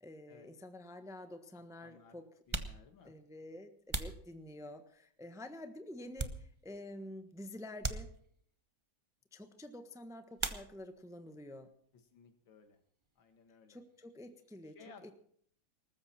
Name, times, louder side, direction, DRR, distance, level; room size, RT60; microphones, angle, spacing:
voice 1, 0.0-2.3 3.0-8.1 9.3-11.7 13.7-14.8 15.0-15.1, left 1 dB, ahead, 8 dB, 1.0 m, -49 dB
sound 1, 0.6-0.7 1.6-1.7 2.3-5.0 5.5-6.9 7.2-7.3 7.8-8.6 10.3-11.1 11.4-12.1 12.4-14.5, right 3 dB, 30° right, 0.5 m, -43 dB
voice 2, 1.8-2.2 2.5-3.2 12.1-12.8 13.2-13.8 14.8-15.1, left 5 dB, 75° left, 8 dB, 2.5 m, -58 dB
20.0 x 13.5 x 4.4 m, 0.62 s
omnidirectional pair, 2.1 m